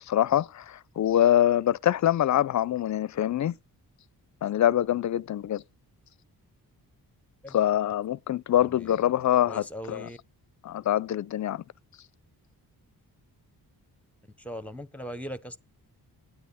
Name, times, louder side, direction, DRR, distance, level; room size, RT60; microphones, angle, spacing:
voice 1, 0.0-3.5 4.4-5.6 7.5-10.1 10.6-11.6, left 11 dB, 50° left, 0.4 m, -24 dB
voice 2, 8.5-10.2 14.4-15.6, equal, 5° left, 0.8 m, -40 dB
9.3 x 9.1 x 4.1 m
cardioid pair, 85°, 39 cm